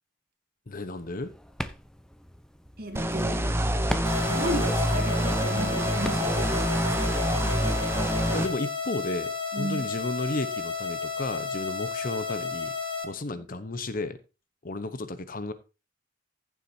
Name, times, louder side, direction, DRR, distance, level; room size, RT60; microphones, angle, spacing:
voice 1, 0.7-1.3 8.3-12.7 13.0-14.2 14.6-15.5, left 2 dB, 45° left, 1.0 m, -33 dB
sound 1, 0.9-6.9, equal, 5° left, 0.7 m, -41 dB
voice 2, 2.8-3.5 4.3-7.1 9.5-9.9, right 1 dB, 50° right, 2.1 m, -35 dB
sound 2, 3.0-8.5, right 1 dB, 15° right, 1.0 m, -26 dB
sound 3, 4.0-13.0, left 5 dB, 25° left, 1.7 m, -32 dB
15.0 x 7.6 x 2.8 m
head